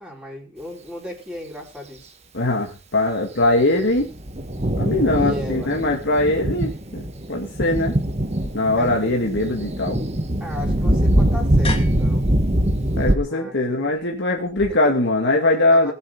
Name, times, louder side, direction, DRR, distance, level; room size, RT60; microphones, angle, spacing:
voice 1, 0.0-2.1 5.1-5.7 8.8-9.1 10.4-12.2 13.2-13.8 14.7-15.0 15.7-15.9, left 1 dB, 5° right, -2 dB, 4.6 m, -36 dB
voice 2, 2.3-4.1 4.8-8.0 8.5-10.0 13.0-15.9, left 2 dB, 60° left, 0 dB, 2.0 m, -21 dB
Thunder, 3.4-13.2, right 1 dB, 35° right, 1.6 m, -22 dB
sound 1, 8.4-14.7, left 2 dB, 30° left, 2.6 m, -38 dB
19.5 x 7.7 x 3.9 m, 0.32 s
head